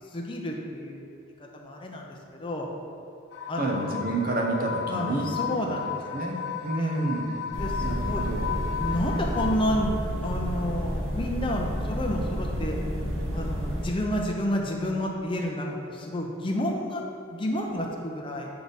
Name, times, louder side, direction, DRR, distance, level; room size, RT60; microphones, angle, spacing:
voice 1, 0.1-1.1 1.5-2.7 3.5-4.0 4.9-6.5 6.8-7.1 7.6-8.2 8.8-12.8 13.3-17.0 17.3-18.5, equal, 25° left, 0 dB, 0.6 m, -30 dB
sound 1, 3.3-9.6, left 7 dB, 70° left, 0.4 m, -34 dB
voice 2, 3.6-5.6 6.1-7.3 7.8-8.5, right 2 dB, 45° right, 0 dB, 0.7 m, -29 dB
sound 2, 7.5-13.9, equal, 75° right, 1.1 m, -30 dB
7.7 x 3.5 x 4.0 m, 2.7 s
head